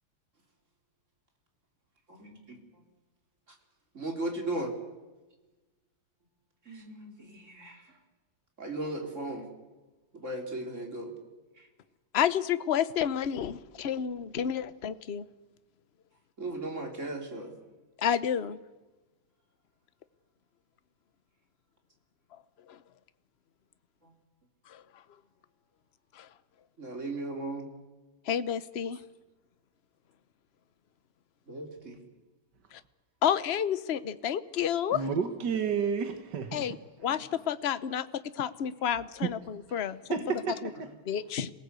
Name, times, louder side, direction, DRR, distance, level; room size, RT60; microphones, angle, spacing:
voice 1, 2.1-2.6 3.9-4.7 6.7-7.8 8.6-9.5 10.1-11.1 11.6-11.7 16.4-17.5 24.0-24.1 26.8-27.7 31.5-32.0 37.1-37.2 40.2-40.3, right 2 dB, 35° right, 3 dB, 3.9 m, -37 dB
voice 2, 12.1-15.2 18.0-18.6 22.7-22.8 24.7-24.8 26.1-26.3 28.3-29.0 32.7-32.8 33.2-35.0 36.5-36.8 37.0-38.1 38.4-40.0 40.6-40.7 41.1-41.5, left 9 dB, 45° left, 14 dB, 0.8 m, -30 dB
voice 3, 34.9-36.7 39.2-39.3 39.8-40.9, right 6 dB, 60° right, 7 dB, 2.0 m, -31 dB
26.5 x 18.5 x 8.3 m, 1.2 s
omnidirectional pair, 2.1 m